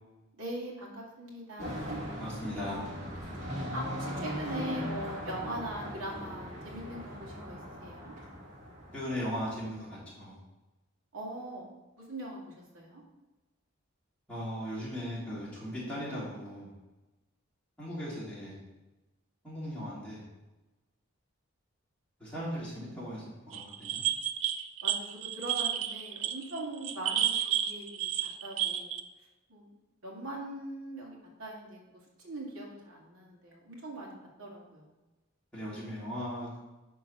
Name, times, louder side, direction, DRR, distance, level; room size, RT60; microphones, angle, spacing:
voice 1, 0.4-2.1 3.7-8.1 11.1-11.7 12.0-13.0 24.8-28.9 29.5-29.7 30.0-31.8 32.2-34.9, right 1 dB, 90° right, -3 dB, 2.4 m, -41 dB
sound 1, 1.6-9.6, equal, 35° right, 2.1 m, -39 dB
voice 2, 2.2-2.8 8.9-10.4 14.3-16.7 17.8-18.6 19.4-20.2 22.2-24.0 35.5-36.6, equal, 5° left, -9 dB, 3.1 m, -38 dB
sound 2, 23.5-29.0, right 11 dB, 70° right, 0.5 m, -31 dB
10.5 x 3.9 x 5.6 m, 1.1 s
head